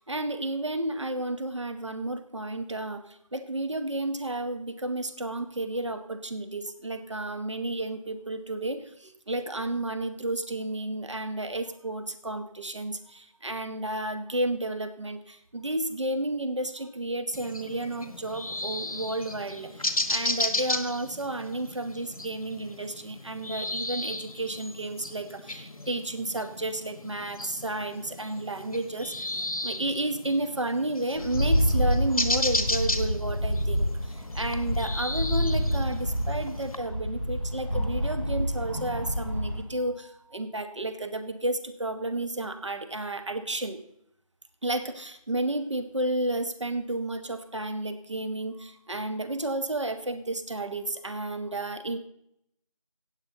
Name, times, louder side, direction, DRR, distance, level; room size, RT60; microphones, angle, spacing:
voice 1, 0.0-43.8 44.6-52.0, right 1 dB, 55° right, 8 dB, 1.1 m, -32 dB
sound 1, 17.3-36.8, left 1 dB, 75° left, 1.3 m, -35 dB
Rattle, 31.1-39.6, equal, 5° right, 4.9 m, -28 dB
16.0 x 8.3 x 3.9 m, 0.76 s
figure-of-eight pair, 170°, 18 cm